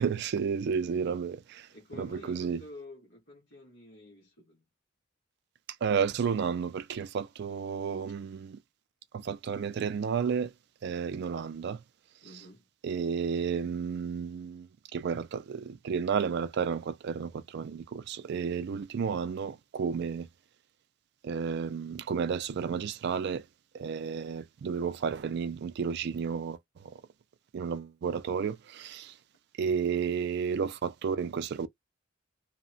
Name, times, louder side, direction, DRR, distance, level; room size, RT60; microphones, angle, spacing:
voice 1, 0.0-2.6 5.8-8.6 9.1-10.5 10.8-11.8 12.8-20.3 21.2-23.5 23.7-27.0 27.5-29.2 29.6-31.7, right 6 dB, 55° right, 0.3 m, -32 dB
voice 2, 1.7-4.6 12.2-12.7, left 2 dB, 85° left, 1.2 m, -49 dB
2.7 x 2.1 x 2.6 m
head